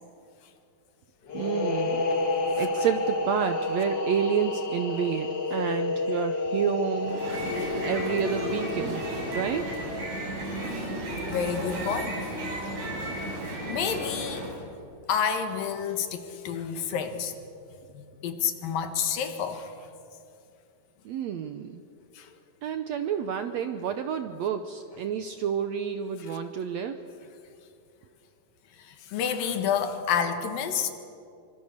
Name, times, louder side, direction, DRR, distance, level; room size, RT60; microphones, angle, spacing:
sound 1, 1.3-10.8, left 3 dB, 40° left, 2.2 m, -30 dB
voice 1, 1.3-2.1 2.5-7.2 7.8-9.0 9.3-9.7 21.0-21.8 22.6-27.0, right 8 dB, 75° right, 8 dB, 1.6 m, -29 dB
sound 2, 7.0-14.6, right 1 dB, 55° right, 6.2 m, -33 dB
voice 2, 11.3-12.2 13.7-14.4 15.1-17.3 17.9-19.7 22.2-22.3 28.9-30.9, left 7 dB, 80° left, 7 dB, 3.3 m, -29 dB
26.5 x 25.0 x 6.7 m, 2.6 s
omnidirectional pair, 4.0 m